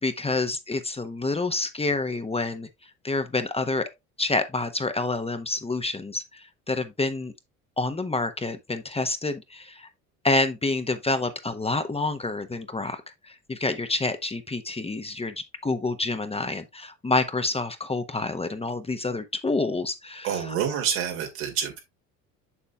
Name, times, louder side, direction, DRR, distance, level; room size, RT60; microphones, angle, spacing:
voice 1, 0.0-2.7 3.0-3.9 4.2-7.3 7.8-9.9 10.2-15.3 15.6-20.6, left 3 dB, 15° left, 0.9 m, -28 dB
voice 2, 20.2-21.8, right 8 dB, 75° right, 2.3 m, -27 dB
7.2 x 6.7 x 2.3 m
hypercardioid pair, 65°, 39 cm